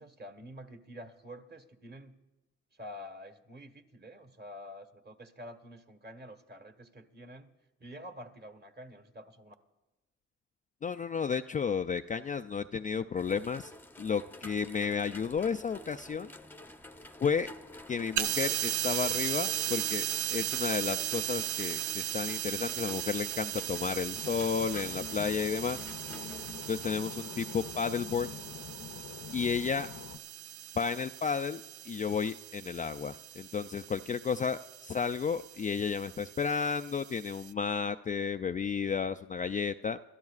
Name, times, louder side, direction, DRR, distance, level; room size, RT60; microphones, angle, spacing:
voice 1, 0.0-2.2 2.7-7.5 7.8-9.5, equal, 35° right, 7 dB, 1.5 m, -48 dB
voice 2, 10.8-13.7 14.0-16.3 17.2-17.5 17.9-25.8 26.7-28.3 29.3-29.9 30.8-40.0, left 6 dB, 25° left, 8 dB, 0.3 m, -32 dB
sound 1, 13.2-26.9, left 1 dB, 5° left, 0.7 m, -50 dB
sound 2, 18.2-37.5, right 12 dB, 75° right, 0.5 m, -37 dB
sound 3, 24.1-30.2, left 9 dB, 55° left, 0.7 m, -45 dB
27.5 x 13.0 x 2.4 m, 1.1 s
cardioid pair, 90°, 30 cm